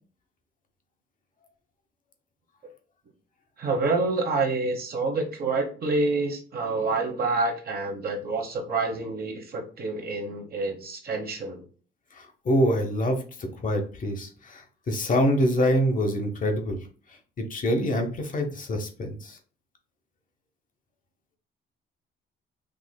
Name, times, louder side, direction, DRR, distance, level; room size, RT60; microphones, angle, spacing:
voice 1, 3.6-11.7, right 3 dB, 50° right, 1 dB, 1.0 m, -27 dB
voice 2, 12.1-16.8 17.4-19.4, equal, 40° left, 4 dB, 0.9 m, -25 dB
4.8 x 2.6 x 2.2 m, 0.41 s
cardioid pair, 90°, 20 cm